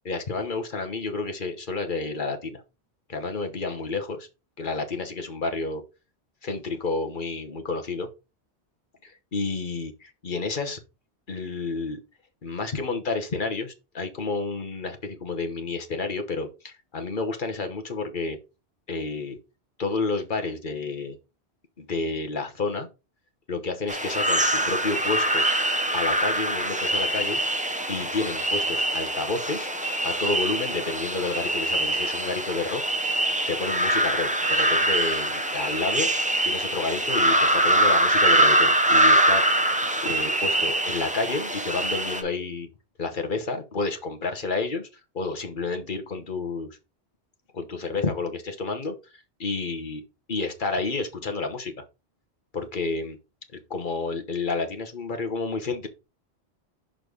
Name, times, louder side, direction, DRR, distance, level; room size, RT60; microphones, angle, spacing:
voice 1, 0.0-2.6 3.1-4.3 4.6-5.8 6.4-8.1 9.0-10.8 11.3-12.0 12.4-18.4 18.9-19.4 19.8-21.2 21.8-22.9 23.5-25.4 25.9-27.4 27.9-29.7 30.0-32.8 33.5-36.1 36.4-39.4 40.0-42.7 43.0-44.9 45.1-46.8 47.5-50.0 50.3-51.7 52.5-53.2 53.5-55.9, left 3 dB, 50° left, 1.2 m, -30 dB
sound 1, 23.9-42.2, right 1 dB, 10° right, 0.7 m, -23 dB
6.3 x 3.9 x 5.2 m
omnidirectional pair, 1.1 m